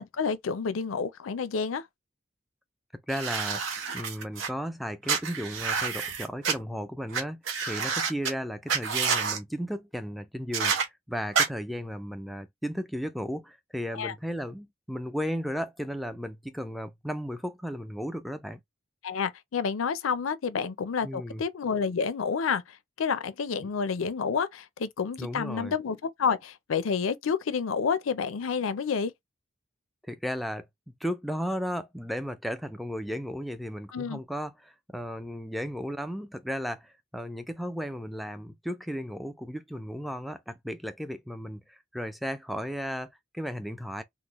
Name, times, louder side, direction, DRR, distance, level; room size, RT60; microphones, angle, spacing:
voice 1, 0.0-1.8 13.9-14.1 19.0-22.6 23.0-29.1 33.9-34.2, left 6 dB, 90° left, 0.5 m, -29 dB
voice 2, 3.1-3.6 3.9-18.6 21.0-21.4 25.2-25.8 30.1-44.0, equal, ahead, 0.3 m, -35 dB
sound 1, 3.1-4.5 5.1-6.5 7.1-7.2 7.5-8.3 8.7-9.4 10.5-10.8 11.3-11.5, right 6 dB, 80° right, 0.8 m, -28 dB
3.8 x 2.0 x 3.0 m
head